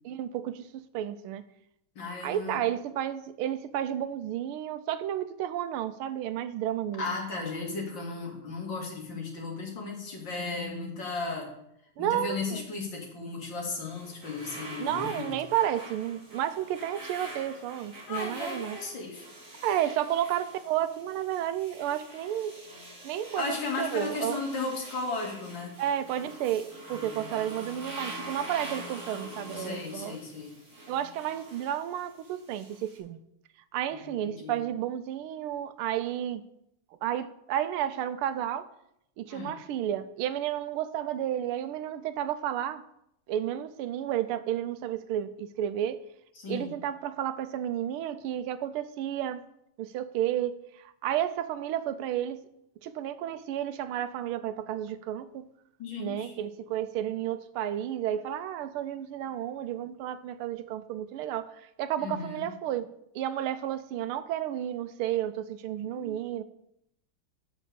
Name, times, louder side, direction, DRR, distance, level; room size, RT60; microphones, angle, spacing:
voice 1, 0.0-1.4 2.2-7.0 12.0-12.7 14.8-18.8 19.6-22.6 23.0-24.4 25.8-30.2 30.9-33.2 33.7-36.4 37.0-38.7 39.2-42.8 43.3-46.0 46.5-49.4 49.8-52.4 52.8-55.5 56.0-61.5 61.8-66.4, right 11 dB, 85° right, 1.5 m, -32 dB
voice 2, 2.0-2.6 7.0-11.5 12.0-15.3 18.1-19.3 23.4-25.7 26.9-27.5 29.6-30.6 33.9-34.6 39.3-39.5 46.4-46.8 55.8-56.4 62.0-62.5 65.9-66.1, left 3 dB, 60° left, 2.8 m, -35 dB
sound 1, 13.7-33.0, right 1 dB, 35° right, 3.1 m, -45 dB
7.5 x 6.2 x 6.8 m
omnidirectional pair, 2.3 m